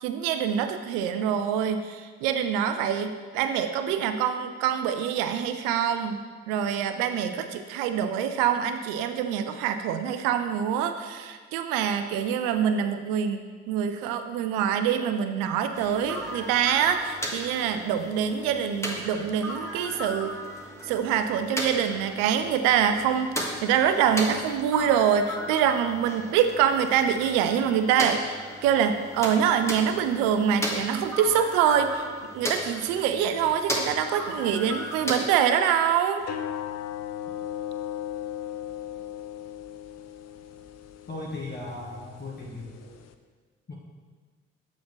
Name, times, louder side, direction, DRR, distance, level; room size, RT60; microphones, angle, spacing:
voice 1, 0.0-20.4 20.8-32.0 32.3-36.2, right 8 dB, 75° right, 8 dB, 0.5 m, -25 dB
sound 1, 15.7-35.3, equal, 10° left, 1.5 m, -36 dB
sound 2, 36.2-43.1, left 10 dB, 50° left, 0.6 m, -37 dB
voice 2, 41.1-42.9 43.7-43.8, left 2 dB, 30° left, -3 dB, 1.1 m, -37 dB
7.6 x 7.0 x 3.1 m, 1.5 s
hypercardioid pair, 40°, 33 cm